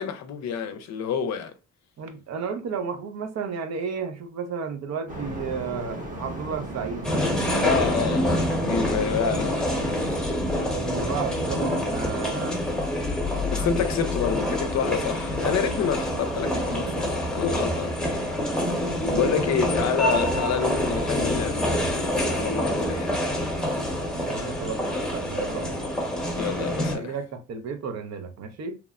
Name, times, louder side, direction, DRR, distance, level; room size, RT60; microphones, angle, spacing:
voice 1, 0.0-1.5 7.6-9.7 13.5-18.0 19.1-23.4 26.4-27.1, left 7 dB, 60° left, 0.5 m, -28 dB
voice 2, 2.0-7.8 10.7-12.6 13.5-13.7 16.8-17.0 24.2-25.8 26.9-28.8, right 5 dB, 60° right, 0.6 m, -33 dB
sound 1, 5.1-10.2, right 1 dB, 25° right, 0.9 m, -36 dB
sound 2, 7.0-27.0, left 1 dB, 5° left, 0.9 m, -26 dB
3.0 x 2.0 x 2.3 m
cardioid pair, 90°, 30 cm